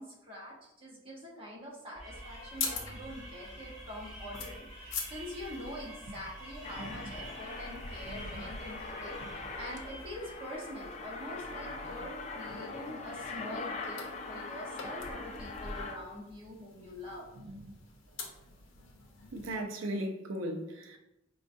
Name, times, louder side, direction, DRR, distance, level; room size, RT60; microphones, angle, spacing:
voice 1, 0.0-17.3, left 1 dB, 25° right, 0.9 m, -45 dB
sound 1, 1.9-10.5, equal, ahead, 1.2 m, -47 dB
sound 2, 2.1-19.5, left 4 dB, 80° left, 0.7 m, -46 dB
Aircraft, 6.6-16.0, left 3 dB, 35° left, 0.3 m, -42 dB
voice 2, 8.1-8.5 9.2-9.3 12.5-12.6 17.4-17.7 19.3-21.0, right 1 dB, 85° right, 0.5 m, -38 dB
4.5 x 2.3 x 2.6 m
head